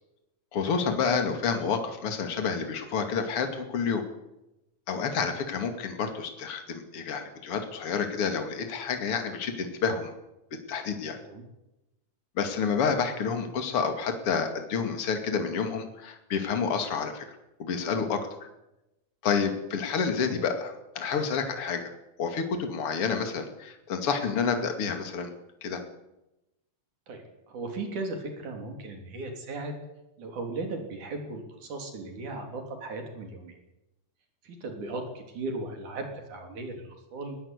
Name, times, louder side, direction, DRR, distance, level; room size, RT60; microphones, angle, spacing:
voice 1, 0.5-4.0 4.9-10.1 10.7-11.2 12.4-17.2 17.6-18.3 19.2-21.9 22.2-25.3 25.6-25.8, left 6 dB, 50° left, 6 dB, 3.1 m, -29 dB
voice 2, 27.1-29.8 30.2-33.6 34.4-37.4, right 2 dB, 75° right, 4 dB, 4.8 m, -37 dB
20.5 x 17.0 x 8.3 m, 0.93 s
omnidirectional pair, 3.5 m